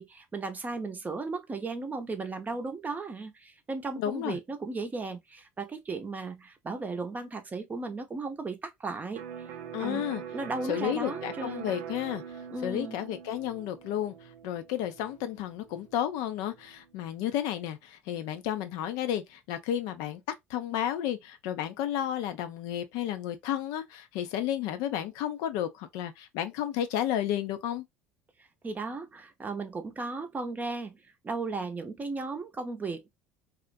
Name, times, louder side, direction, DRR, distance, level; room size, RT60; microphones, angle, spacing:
voice 1, 0.0-9.2 9.8-10.0 10.3-11.7 12.5-13.0 28.6-31.0 31.2-33.1, right 3 dB, 25° right, 0.6 m, -35 dB
voice 2, 4.0-4.4 9.7-10.2 10.7-12.2 12.6-14.1 14.4-20.2 20.5-27.8, left 11 dB, 70° left, 0.4 m, -32 dB
Electric guitar, 9.2-16.8, right 8 dB, 75° right, 0.4 m, -43 dB
2.4 x 2.1 x 2.4 m
hypercardioid pair, 75°, 7 cm